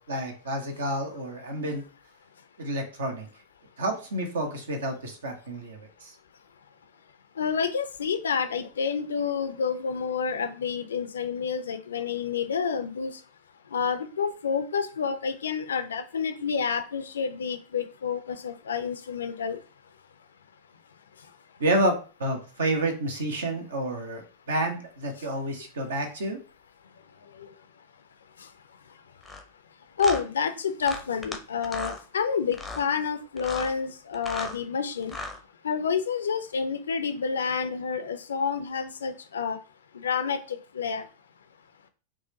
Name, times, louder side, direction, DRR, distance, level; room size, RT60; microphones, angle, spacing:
voice 1, 0.0-1.8 2.6-3.3 3.8-6.1 21.6-26.4, right 1 dB, 65° right, 4 dB, 1.0 m, -29 dB
voice 2, 7.4-13.2 13.7-19.6 27.4-27.5 30.0-35.2 35.6-39.6 39.9-41.0, left 6 dB, 65° left, 9 dB, 0.4 m, -29 dB
sound 1, 29.2-29.4 30.0-30.2 30.8-31.4 31.6-32.0 32.5-32.8 33.4-33.7 34.1-34.6 35.0-35.4, left 2 dB, ahead, 0.7 m, -36 dB
4.6 x 2.5 x 2.7 m, 0.36 s
figure-of-eight pair, 90°, 0 cm